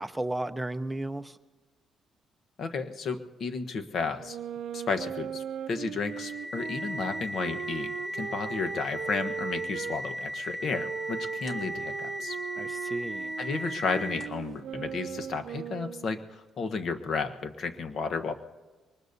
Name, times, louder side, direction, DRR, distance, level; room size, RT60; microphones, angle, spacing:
voice 1, 0.0-1.4 12.6-13.3, right 1 dB, 10° right, 10 dB, 0.7 m, -34 dB
voice 2, 2.6-4.4 4.7-12.4 13.4-18.3, left 4 dB, 60° left, 7 dB, 1.1 m, -33 dB
sound 1, 4.2-10.0 10.7-16.2, right 9 dB, 70° right, 0.4 m, -39 dB
sound 2, 6.0-14.5, equal, 30° left, 2.0 m, -37 dB
23.5 x 20.0 x 2.7 m, 1.3 s
cardioid pair, 90°, 0 cm